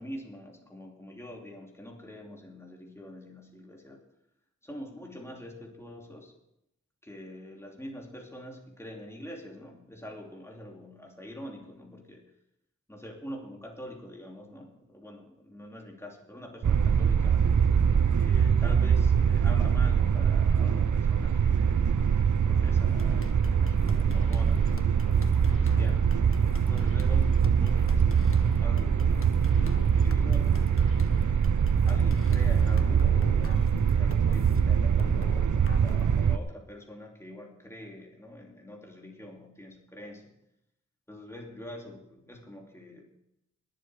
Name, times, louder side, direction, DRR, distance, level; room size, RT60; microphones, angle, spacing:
voice 1, 0.0-4.0 4.6-6.3 7.0-12.2 12.9-17.5 18.2-22.0 22.4-26.2 26.6-29.5 29.9-30.9 31.8-40.3 41.1-43.0, equal, 10° left, 0 dB, 2.8 m, -45 dB
sound 1, 16.6-36.4, right 7 dB, 70° right, 0.7 m, -23 dB
sound 2, 22.9-34.6 35.0-36.0, left 3 dB, 45° left, 1.4 m, -44 dB
20.0 x 7.7 x 4.9 m, 0.83 s
wide cardioid pair, 55°, 31 cm